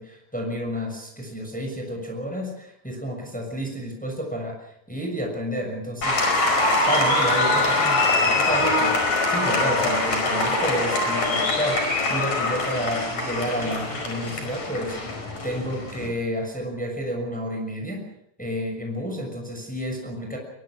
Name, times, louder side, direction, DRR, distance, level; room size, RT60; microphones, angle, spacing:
voice 1, 0.0-6.2 6.9-18.0 18.4-20.4, equal, ahead, 2 dB, 6.1 m, -30 dB
Applause, 6.0-16.1, left 2 dB, 50° left, 6.2 m, -23 dB
23.5 x 23.5 x 6.3 m, 0.75 s
omnidirectional pair, 4.2 m